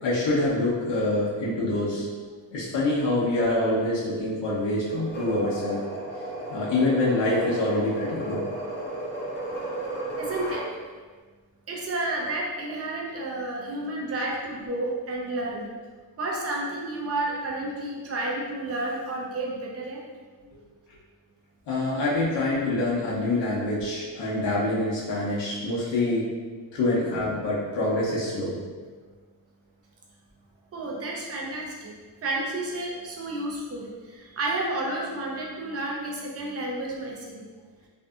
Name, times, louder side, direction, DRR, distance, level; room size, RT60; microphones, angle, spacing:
voice 1, 0.0-2.1 2.5-5.8 6.5-8.5 21.7-26.3 26.7-28.6, left 2 dB, 75° left, -6 dB, 0.7 m, -25 dB
sound 1, 4.9-10.7, right 2 dB, 25° left, 0.7 m, -34 dB
voice 2, 10.1-10.6 11.7-15.7 16.2-20.0 30.7-31.9 32.2-37.4, right 2 dB, 35° right, -3 dB, 0.5 m, -31 dB
2.6 x 2.6 x 2.3 m, 1.5 s
wide cardioid pair, 155°, 44 cm